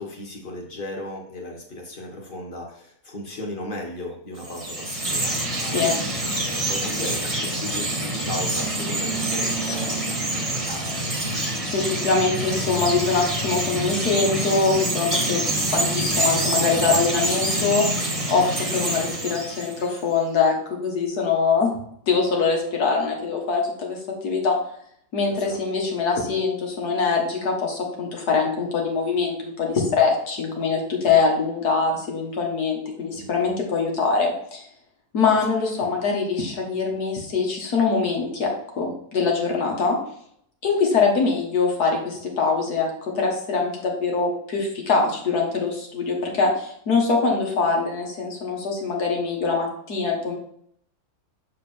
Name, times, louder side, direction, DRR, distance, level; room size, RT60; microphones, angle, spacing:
voice 1, 0.0-5.8 6.4-11.2 25.3-25.6 33.1-33.6, left 1 dB, 35° left, 0 dB, 1.6 m, -36 dB
Chirp tweet, 4.4-20.0, right 1 dB, 25° right, 1.1 m, -26 dB
voice 2, 5.6-5.9 11.7-17.9 18.3-20.6 20.8-21.7 22.1-24.6 25.1-34.7 35.1-40.0 40.6-50.3, left 4 dB, 85° left, 0 dB, 2.0 m, -23 dB
6.7 x 4.2 x 4.4 m, 0.68 s
omnidirectional pair, 1.6 m